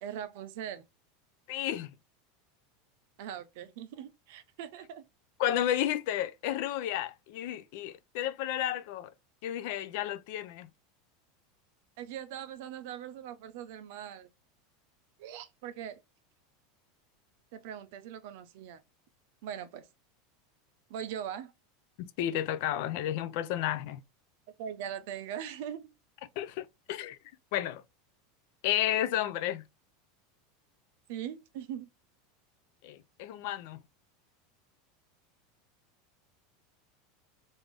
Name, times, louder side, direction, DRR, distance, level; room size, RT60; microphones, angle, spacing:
voice 1, 0.0-0.8 3.2-5.0 12.0-14.3 15.2-16.0 17.5-18.8 19.4-19.9 20.9-21.5 24.6-25.9 31.1-31.9, right 9 dB, 55° right, 0.5 m, -41 dB
voice 2, 1.5-1.9 5.4-9.1 9.4-10.7 22.0-24.0 26.4-27.2 27.5-27.8 28.6-29.6 32.8-33.8, left 12 dB, 50° left, 0.4 m, -32 dB
3.3 x 2.6 x 3.3 m
supercardioid pair, 175°, 0 cm